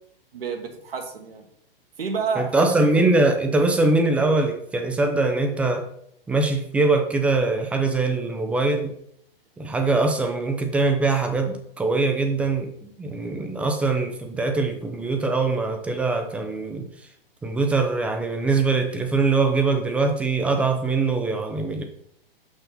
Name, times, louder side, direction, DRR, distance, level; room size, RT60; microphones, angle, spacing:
voice 1, 0.3-1.5 2.0-3.0, right 5 dB, 75° right, 4 dB, 1.5 m, -30 dB
voice 2, 2.4-5.9 6.3-8.9 9.6-16.9 17.4-21.8, right 3 dB, 5° right, 5 dB, 0.3 m, -22 dB
5.9 x 5.3 x 4.1 m, 0.70 s
hypercardioid pair, 125°, 29 cm